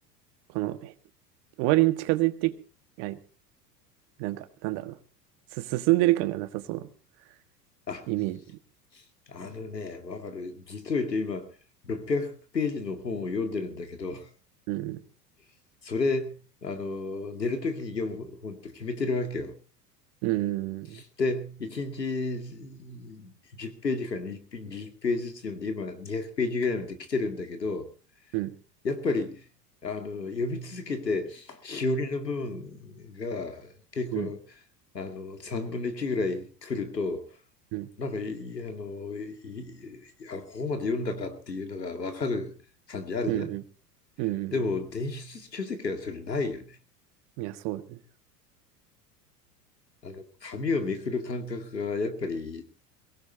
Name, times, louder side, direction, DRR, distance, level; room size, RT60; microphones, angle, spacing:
voice 1, 0.5-0.9 1.6-2.5 3.0-3.2 4.2-5.0 5.5-6.9 8.1-8.4 14.7-15.0 20.2-21.0 28.3-28.5 34.1-34.3 37.7-37.9 43.3-43.6 44.2-44.5 47.4-48.0, right 18 dB, 50° right, 1.6 m, -27 dB
voice 2, 9.3-11.5 11.8-14.3 15.8-19.6 20.9-27.9 28.8-29.5 29.8-34.4 34.9-37.3 38.0-42.5 42.9-43.5 44.5-46.8 50.0-52.6, left 3 dB, 90° left, 2.3 m, -32 dB
23.0 x 17.5 x 2.7 m
figure-of-eight pair, 85°, 48 cm